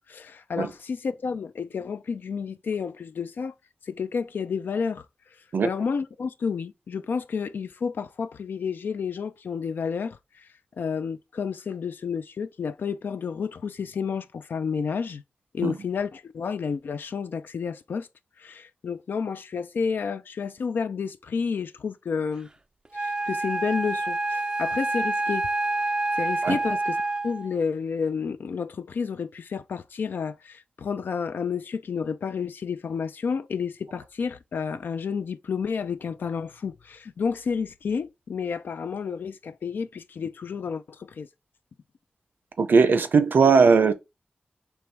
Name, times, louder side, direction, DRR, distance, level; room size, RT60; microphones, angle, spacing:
voice 1, 0.1-3.5 3.9-5.0 5.6-10.2 10.8-15.2 15.5-18.1 18.4-22.5 22.9-25.4 26.2-27.0 27.2-41.3, left 6 dB, 85° left, 0.4 m, -30 dB
Wind instrument woodwind instrument, 22.9-27.5, right 2 dB, 25° right, 0.3 m, -27 dB
voice 2, 42.6-43.9, right 5 dB, 75° right, 0.6 m, -18 dB
4.5 x 3.1 x 3.3 m
wide cardioid pair, 65°, 3 cm